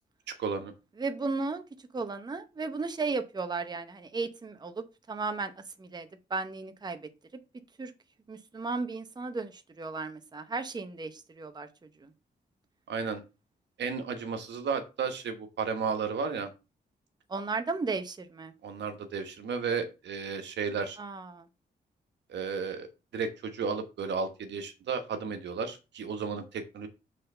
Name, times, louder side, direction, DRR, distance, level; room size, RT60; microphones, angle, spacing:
voice 1, 0.4-0.7 12.9-13.2 13.8-16.5 18.6-21.0 22.3-22.9 23.1-26.9, right 5 dB, 85° right, 7 dB, 1.3 m, -33 dB
voice 2, 1.0-1.6 1.9-5.5 5.8-7.1 7.8-7.9 8.3-11.7 12.0-12.1 17.3-18.5 21.0-21.5, right 3 dB, 25° right, 8 dB, 0.8 m, -35 dB
6.5 x 3.8 x 5.5 m, 0.28 s
cardioid pair, 115°, 18 cm